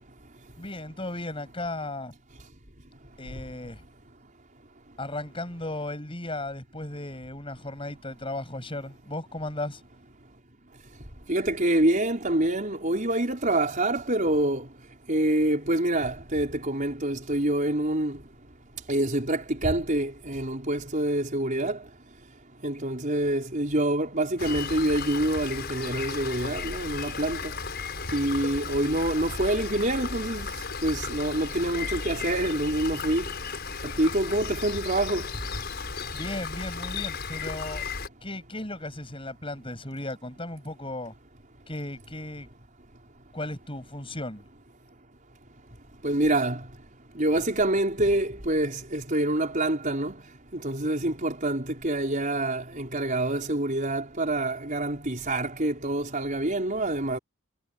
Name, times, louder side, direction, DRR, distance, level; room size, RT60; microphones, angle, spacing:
voice 1, 0.6-2.1 3.2-3.8 5.0-9.8 36.1-37.8 38.2-41.1 41.7-42.5 43.3-44.4, left 2 dB, 25° left, 7.2 m, -35 dB
voice 2, 11.3-14.7 15.1-18.2 18.9-21.8 22.6-27.5 28.1-30.5 30.8-33.3 33.8-35.3 46.0-46.7 47.2-50.2 50.5-57.2, right 1 dB, 40° right, 5.2 m, -26 dB
Rain, 24.4-38.1, left 5 dB, 50° left, 6.2 m, -35 dB
head